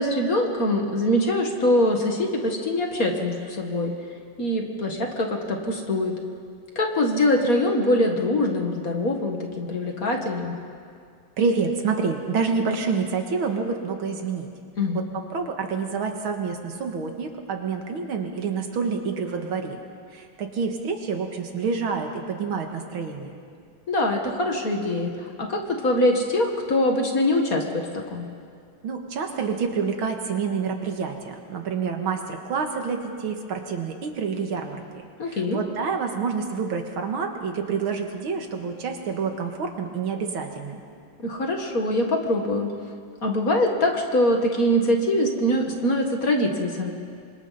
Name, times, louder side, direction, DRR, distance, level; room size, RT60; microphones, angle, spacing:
voice 1, 0.0-3.9 4.4-6.1 6.8-10.6 14.8-15.1 23.9-28.3 35.2-35.6 41.2-42.7 43.2-46.9, left 1 dB, 45° left, 2 dB, 2.2 m, -23 dB
voice 2, 11.4-14.5 15.3-19.8 20.1-23.3 28.8-34.8 35.3-40.8, right 5 dB, 75° right, 4 dB, 2.4 m, -28 dB
27.5 x 25.0 x 4.2 m, 2.2 s
omnidirectional pair, 2.3 m